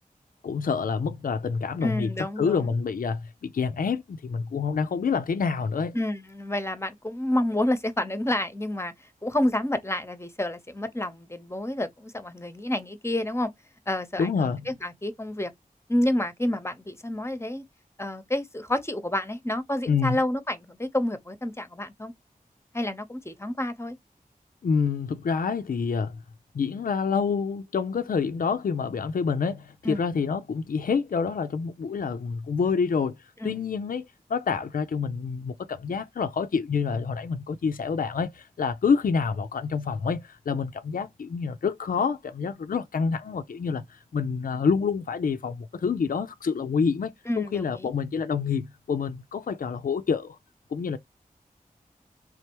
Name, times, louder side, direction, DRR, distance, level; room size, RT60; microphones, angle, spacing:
voice 1, 0.4-2.1 2.4-6.0 14.2-14.7 19.9-20.2 24.6-26.2 26.5-33.2 33.4-50.4 50.7-51.0, left 5 dB, 70° left, 0.4 m, -27 dB
voice 2, 1.8-2.7 5.9-13.5 13.9-15.5 15.9-17.6 18.0-22.1 22.7-24.0 29.8-30.0 33.4-33.6 47.3-47.9, left 1 dB, 15° left, 0.7 m, -29 dB
3.7 x 3.3 x 2.9 m
wide cardioid pair, 65°, 15 cm